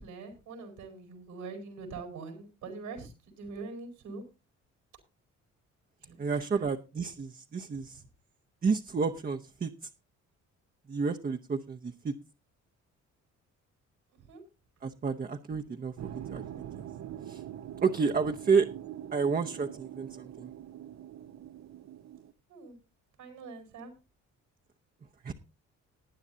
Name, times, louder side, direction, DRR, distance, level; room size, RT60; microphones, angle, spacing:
voice 1, 0.0-4.2 6.0-6.2 6.5-6.7 14.1-14.4 22.5-22.8 23.2-23.9, right 4 dB, 90° right, 4 dB, 4.5 m, -43 dB
voice 2, 6.2-8.0 8.6-9.7 10.9-12.1 14.8-16.4 17.3-17.4 17.8-18.7 19.1-20.5 25.2-25.3, right 5 dB, 30° right, 4 dB, 0.8 m, -30 dB
sound 1, 16.0-22.3, right 10 dB, 65° right, 0.8 m, -43 dB
19.0 x 9.6 x 2.7 m, 0.27 s
cardioid pair, 90°, 30 cm